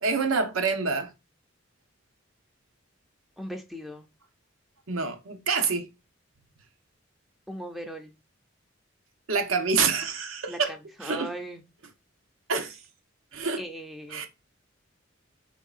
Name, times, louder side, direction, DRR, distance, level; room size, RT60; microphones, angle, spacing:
voice 1, 0.0-1.1 4.9-5.9 9.3-10.7 11.0-11.3 12.5-12.8 13.3-13.6 14.1-14.3, right 4 dB, 90° right, 0.8 m, -27 dB
voice 2, 3.4-4.1 7.5-8.1 10.5-10.6 11.0-11.6 13.6-14.2, equal, ahead, 0.4 m, -38 dB
4.4 x 3.6 x 2.4 m
head